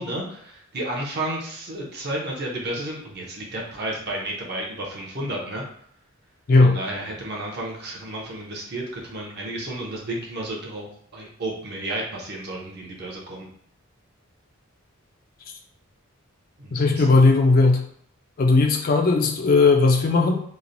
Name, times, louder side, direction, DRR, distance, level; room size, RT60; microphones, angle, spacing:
voice 1, 0.0-5.6 6.6-10.9 11.1-13.5 16.6-17.1, right 1 dB, 45° right, -3 dB, 0.6 m, -32 dB
voice 2, 16.7-17.8 18.4-20.4, left 3 dB, 40° left, 2 dB, 0.3 m, -17 dB
3.0 x 2.1 x 2.6 m, 0.66 s
head